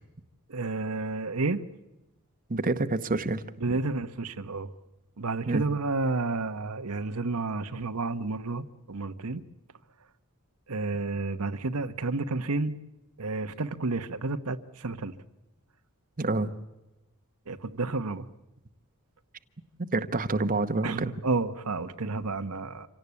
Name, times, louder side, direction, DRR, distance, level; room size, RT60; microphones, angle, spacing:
voice 1, 0.5-1.6 3.6-4.7 5.2-9.4 10.7-12.8 13.2-15.1 17.5-18.3 20.8-22.9, right 3 dB, 80° right, 9 dB, 1.1 m, -31 dB
voice 2, 2.5-3.4 3.7-3.8 5.5-5.6 16.2-16.5 19.8-21.1, right 2 dB, 40° right, 8 dB, 1.0 m, -27 dB
26.5 x 18.0 x 8.4 m, 0.98 s
head